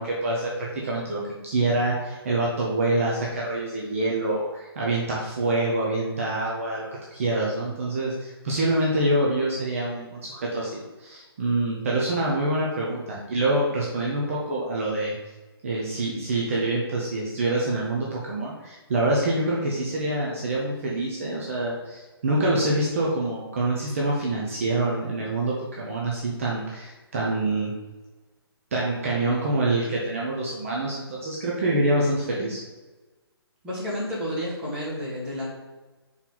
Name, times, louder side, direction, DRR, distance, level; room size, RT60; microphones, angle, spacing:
voice 1, 0.0-15.2 15.6-27.7 28.7-32.6, right 2 dB, 30° right, -4 dB, 0.9 m, -26 dB
voice 2, 33.6-35.5, equal, 5° right, -8 dB, 1.4 m, -30 dB
5.6 x 4.6 x 4.0 m, 1.2 s
hypercardioid pair, 170°, 14 cm